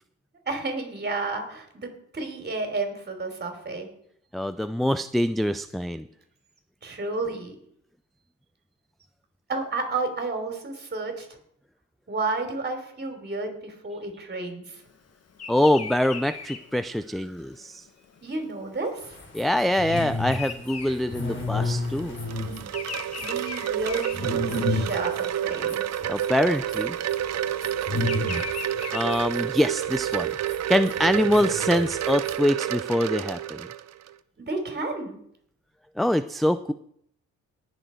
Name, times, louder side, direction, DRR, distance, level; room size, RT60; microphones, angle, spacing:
voice 1, 0.5-3.9 6.8-7.6 9.5-11.3 12.1-14.8 18.2-19.2 23.2-25.8 34.4-35.2, right 3 dB, 35° right, 4 dB, 3.5 m, -31 dB
voice 2, 4.3-6.0 15.5-17.8 19.3-22.2 26.1-27.0 28.9-30.3 30.7-33.7 36.0-36.7, left 1 dB, ahead, 12 dB, 0.4 m, -24 dB
Bird vocalization bird call bird song, 15.3-21.8 22.0-24.9 25.4-25.7 26.7-29.7, left 5 dB, 55° left, 1.6 m, -39 dB
sound 1, 19.0-32.4, left 2 dB, 40° left, 3.6 m, -33 dB
Wind chime, 21.9-34.1, right 11 dB, 60° right, 0.7 m, -29 dB
19.0 x 6.9 x 4.5 m, 0.68 s
cardioid pair, 90°, 30 cm